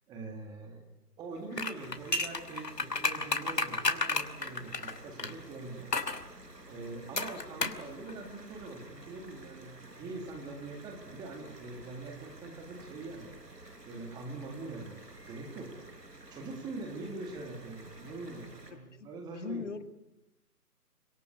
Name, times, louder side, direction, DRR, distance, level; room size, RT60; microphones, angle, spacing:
voice 1, 0.1-0.8 1.2-5.9 6.2-6.3 6.7-13.4 13.9-15.8 16.3-19.7, right 3 dB, 10° right, 3 dB, 1.9 m, -43 dB
sound 1, 1.5-5.3 5.9-6.2 7.2-7.8 8.1-8.2, left 3 dB, 80° left, 2.8 m, -31 dB
sound 2, 1.7-18.7, right 2 dB, 85° right, 5.8 m, -52 dB
voice 2, 18.7-19.1 19.3-19.8, left 5 dB, 50° left, 9 dB, 2.3 m, -40 dB
25.5 x 23.0 x 8.3 m, 0.88 s
figure-of-eight pair, 150°, 48 cm